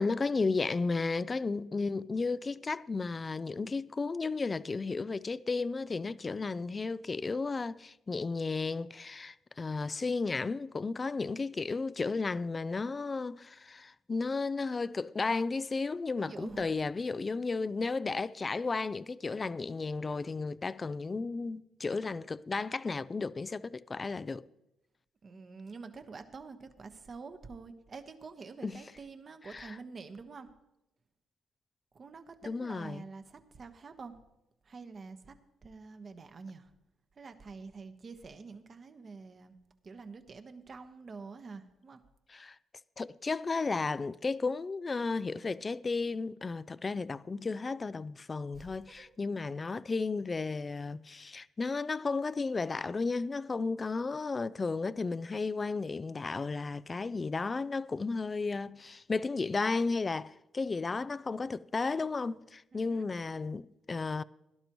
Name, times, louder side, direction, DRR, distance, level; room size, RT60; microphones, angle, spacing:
voice 1, 0.0-24.5 28.6-28.8 29.5-29.8 32.4-33.0 42.3-42.6 43.0-64.2, left 4 dB, 30° left, 0.4 m, -33 dB
voice 2, 16.2-16.7 25.2-30.5 31.9-34.2 34.6-35.4 35.6-36.7 37.2-39.6 39.8-42.0 48.5-49.1 62.7-63.1, right 4 dB, 40° right, 1.2 m, -47 dB
17.5 x 12.0 x 3.1 m
cardioid pair, 90°, 0 cm